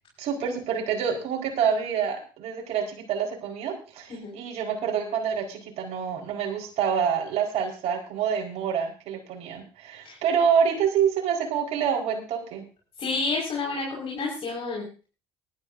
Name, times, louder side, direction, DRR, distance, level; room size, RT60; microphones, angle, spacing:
voice 1, 0.2-12.6, right 7 dB, 65° right, 0 dB, 4.8 m, -27 dB
voice 2, 13.0-14.8, left 3 dB, 50° left, -3 dB, 5.5 m, -30 dB
20.0 x 12.5 x 2.7 m, 0.35 s
hypercardioid pair, 60°, 12 cm